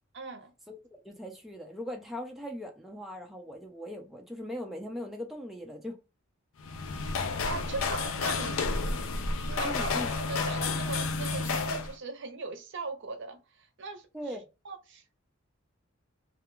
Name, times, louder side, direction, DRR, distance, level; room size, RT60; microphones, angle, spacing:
voice 1, 0.1-0.5 7.4-8.9 9.5-9.9 10.3-13.4 13.8-14.1 14.6-15.0, right 3 dB, 60° right, 0.6 m, -39 dB
voice 2, 1.0-6.0 9.6-10.1 14.1-14.5, equal, ahead, 0.3 m, -39 dB
sound 1, 6.6-11.9, left 4 dB, 75° left, 0.4 m, -31 dB
2.3 x 2.2 x 2.9 m
head